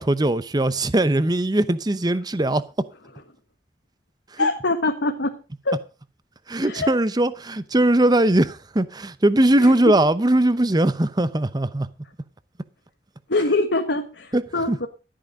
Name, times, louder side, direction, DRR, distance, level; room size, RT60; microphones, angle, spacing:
voice 1, 0.0-2.6 4.4-4.5 6.5-11.9 14.3-14.4 14.7-14.8, right 1 dB, 25° right, 0.8 m, -20 dB
voice 2, 4.4-5.4 5.6-5.8 6.6-6.9 9.6-9.9 13.3-14.9, left 2 dB, 80° left, 1.5 m, -24 dB
13.0 x 8.9 x 5.1 m
head